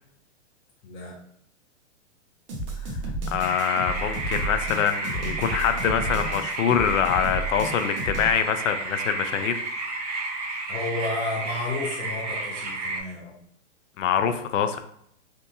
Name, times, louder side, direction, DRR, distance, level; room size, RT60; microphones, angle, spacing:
voice 1, 0.8-1.2 10.7-13.3, left 2 dB, 15° left, -4 dB, 0.6 m, -32 dB
sound 1, 2.5-8.3, right 2 dB, 50° right, 1.1 m, -32 dB
voice 2, 3.3-9.6 14.0-14.8, left 8 dB, 90° left, 8 dB, 0.5 m, -24 dB
sound 2, 3.4-13.0, right 3 dB, 35° right, 0.5 m, -32 dB
3.5 x 2.6 x 2.7 m, 0.69 s
hypercardioid pair, 155°, 37 cm